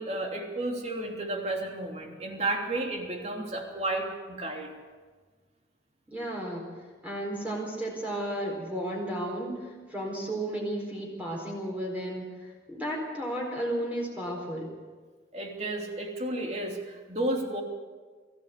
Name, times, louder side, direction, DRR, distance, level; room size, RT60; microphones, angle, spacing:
voice 1, 0.0-4.7 15.3-17.6, right 1 dB, 35° right, 1 dB, 3.1 m, -32 dB
voice 2, 6.1-6.7 7.0-14.7, right 1 dB, 10° right, -3 dB, 4.4 m, -33 dB
22.5 x 15.0 x 8.3 m, 1.5 s
head